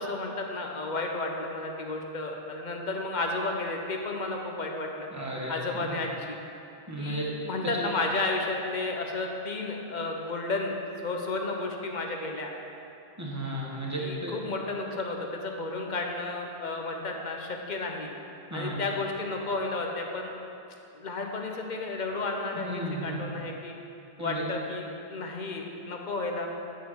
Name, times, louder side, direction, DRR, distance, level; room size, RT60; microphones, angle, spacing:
voice 1, 0.0-5.1 5.5-6.4 7.0-10.8 11.0-12.5 14.0-18.1 18.5-20.3 20.9-23.7 24.2-26.5, left 2 dB, 50° left, 2 dB, 0.8 m, -32 dB
voice 2, 5.1-5.9 6.9-7.2 7.8-7.9 13.2-14.4 18.5-18.7 22.6-23.2 24.2-24.4, right 1 dB, 15° right, -4 dB, 1.2 m, -34 dB
10.0 x 5.2 x 4.5 m, 2.8 s
omnidirectional pair, 1.1 m